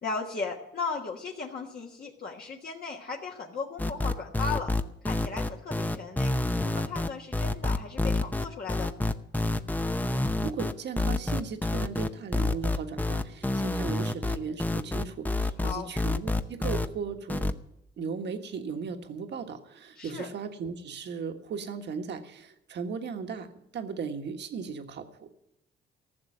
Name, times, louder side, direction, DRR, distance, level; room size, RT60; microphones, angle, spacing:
voice 1, 0.0-4.7 5.0-6.3 6.7-8.9 13.5-13.7 15.6-15.9 20.0-20.3, left 4 dB, 50° left, -2 dB, 1.6 m, -36 dB
sound 1, 3.8-16.9 17.3-17.5, left 2 dB, 10° left, 0.7 m, -28 dB
voice 2, 10.4-17.5 18.0-25.3, right 6 dB, 60° right, 6 dB, 1.5 m, -37 dB
14.5 x 6.8 x 9.9 m, 0.81 s
cardioid pair, 90°, 20 cm